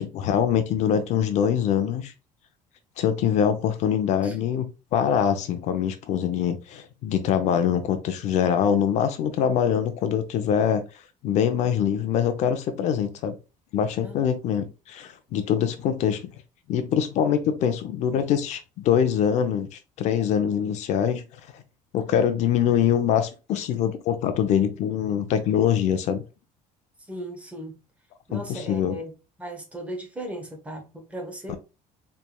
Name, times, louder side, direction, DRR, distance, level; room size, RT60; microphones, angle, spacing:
voice 1, 0.0-2.1 3.0-4.7 4.9-10.8 11.2-13.3 13.7-16.3 16.7-21.2 21.5-21.6 21.9-26.2 28.3-29.0 31.5-31.6, left 8 dB, 55° left, 0.6 m, -24 dB
voice 2, 21.9-22.3 27.1-27.7 28.3-29.1 29.4-31.6, right 1 dB, 10° right, 1.0 m, -37 dB
4.4 x 3.3 x 2.2 m
cardioid pair, 170°, 14 cm